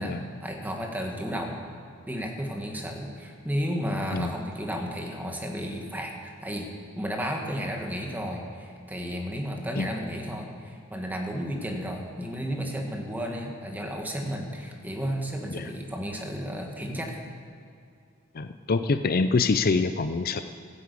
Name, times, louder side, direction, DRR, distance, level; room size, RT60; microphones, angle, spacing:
voice 1, 0.0-1.6 2.1-6.7 7.0-17.2, equal, 10° right, 1 dB, 1.8 m, -33 dB
voice 2, 18.3-20.4, left 4 dB, 45° left, 10 dB, 0.5 m, -25 dB
15.0 x 9.8 x 8.4 m, 2.4 s
head